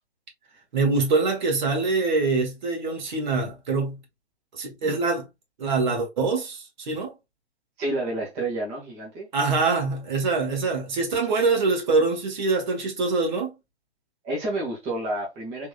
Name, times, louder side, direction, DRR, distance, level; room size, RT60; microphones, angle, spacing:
voice 1, 0.7-4.0 4.5-5.2 5.6-7.1 9.3-13.5, right 3 dB, 45° right, 1.4 m, -24 dB
voice 2, 7.8-9.3 14.2-15.7, right 1 dB, 20° right, 1.1 m, -30 dB
3.6 x 3.0 x 2.4 m
figure-of-eight pair, 125°, 33 cm